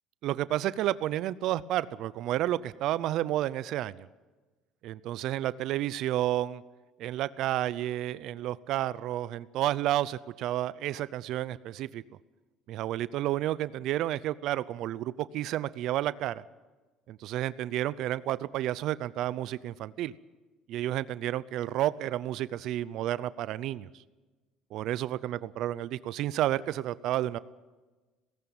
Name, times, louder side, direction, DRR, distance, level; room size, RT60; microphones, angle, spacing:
voice 1, 0.2-4.1 4.8-6.6 7.0-12.0 12.7-16.4 17.1-20.1 20.7-23.9 24.7-27.4, right 13 dB, 65° right, 18 dB, 0.6 m, -31 dB
18.0 x 16.5 x 8.8 m, 1.2 s
cardioid pair, 110°, 0 cm